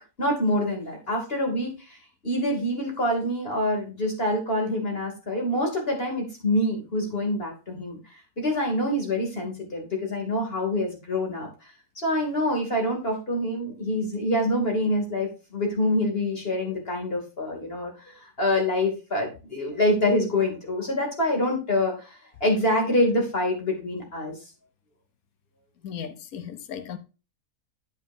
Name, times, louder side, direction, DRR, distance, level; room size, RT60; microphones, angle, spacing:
voice 1, 0.2-2.0 2.2-8.0 8.4-11.5 12.0-24.3, left 1 dB, 40° left, 3.1 m, -26 dB
voice 2, 25.8-27.0, left 8 dB, 70° left, 1.4 m, -36 dB
9.0 x 8.2 x 2.7 m
omnidirectional pair, 1.6 m